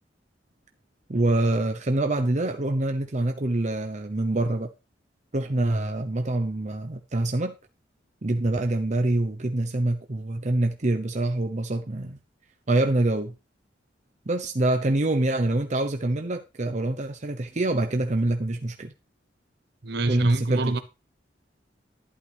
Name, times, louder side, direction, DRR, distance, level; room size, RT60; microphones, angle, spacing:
voice 1, 1.1-4.7 5.3-7.6 8.2-12.2 12.7-13.3 14.3-18.9 20.1-20.8, right 2 dB, 40° right, 0.8 m, -25 dB
voice 2, 19.8-20.8, right 2 dB, 65° right, 1.1 m, -25 dB
11.5 x 11.0 x 3.4 m
head